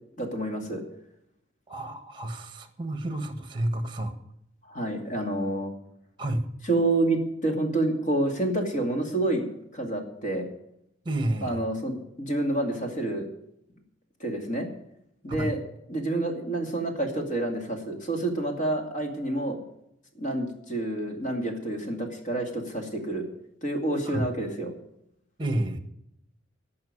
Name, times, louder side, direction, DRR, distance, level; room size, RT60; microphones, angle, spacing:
voice 1, 0.2-0.8 4.7-5.7 6.7-9.4 9.7-10.5 11.4-13.3 14.2-14.7 15.2-15.6 15.9-19.6 20.2-23.3 23.6-24.7, right 2 dB, 40° left, 2 dB, 2.4 m, -28 dB
voice 2, 1.7-4.1 6.2-6.5 11.0-11.6 15.4-15.5 24.0-24.3 25.4-25.8, right 1 dB, 25° right, 7 dB, 1.4 m, -30 dB
15.0 x 5.7 x 9.6 m, 0.80 s
head